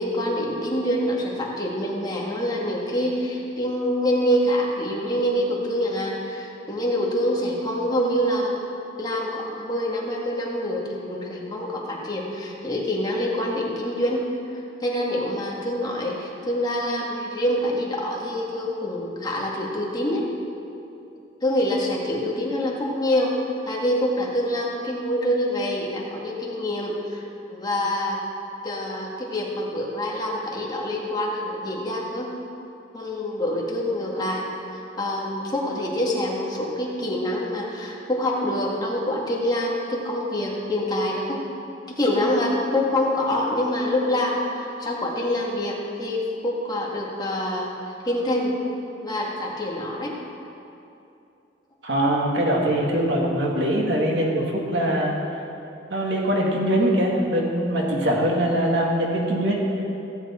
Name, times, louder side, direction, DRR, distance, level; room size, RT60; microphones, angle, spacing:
voice 1, 0.0-8.6 9.0-14.3 14.5-20.3 21.4-23.4 23.7-27.2 27.5-28.2 28.6-32.3 32.9-34.4 35.0-41.4 41.9-47.7 48.0-48.5 49.0-50.1, left 1 dB, 25° left, -3 dB, 1.8 m, -26 dB
voice 2, 51.8-55.2 55.9-59.6, right 1 dB, 70° right, -2 dB, 1.9 m, -22 dB
16.5 x 8.2 x 4.4 m, 2.7 s
head